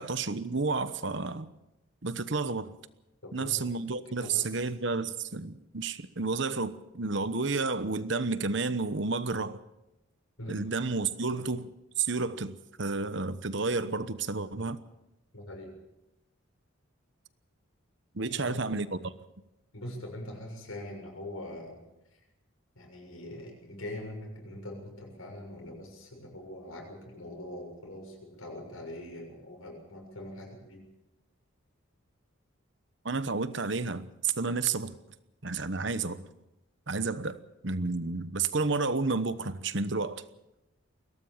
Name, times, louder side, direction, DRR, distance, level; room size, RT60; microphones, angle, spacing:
voice 1, 0.0-1.5 2.0-2.7 3.3-9.6 10.5-14.8 18.1-19.1 33.0-34.9 35.4-36.2 36.9-40.2, right 4 dB, 55° right, 1.1 m, -31 dB
voice 2, 3.2-3.6 4.2-4.6 10.4-10.7 15.3-15.8 18.2-18.6 19.7-21.8 22.1-22.2 22.7-30.8, left 1 dB, 85° left, 6.8 m, -43 dB
22.0 x 18.0 x 7.3 m
head